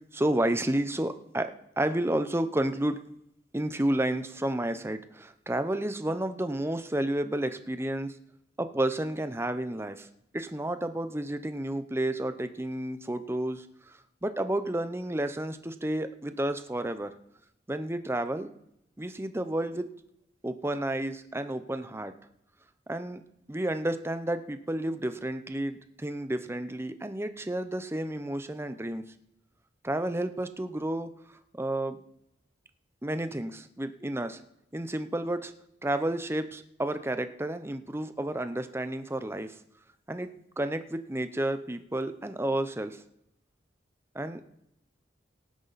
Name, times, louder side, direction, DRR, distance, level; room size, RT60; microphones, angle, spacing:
voice 1, 0.1-3.0 3.5-8.1 8.6-10.1 10.3-17.1 17.7-18.5 19.0-19.9 20.4-22.1 22.9-23.2 23.5-29.0 29.8-31.1 31.5-32.0 33.0-34.4 34.7-35.5 35.8-39.6 40.1-40.3 40.6-43.0 44.1-44.4, right 1 dB, 15° right, 10 dB, 0.7 m, -31 dB
18.0 x 9.7 x 4.1 m, 0.79 s
head